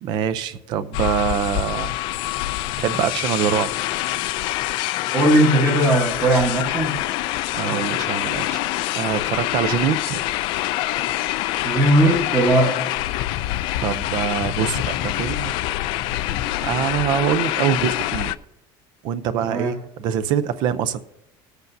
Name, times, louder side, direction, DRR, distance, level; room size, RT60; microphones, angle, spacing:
voice 1, 0.0-2.0 2.8-3.7 7.5-8.6 9.0-10.2 13.8-15.6 16.6-18.4 19.0-21.0, right 9 dB, 45° right, 0.5 m, -24 dB
sound 1, 0.9-18.4, left 15 dB, 50° left, 0.3 m, -25 dB
voice 2, 5.1-7.0 11.6-12.9 19.4-19.7, right 1 dB, 20° right, 1.2 m, -18 dB
20.5 x 8.1 x 2.7 m
cardioid pair, 180°, 10 cm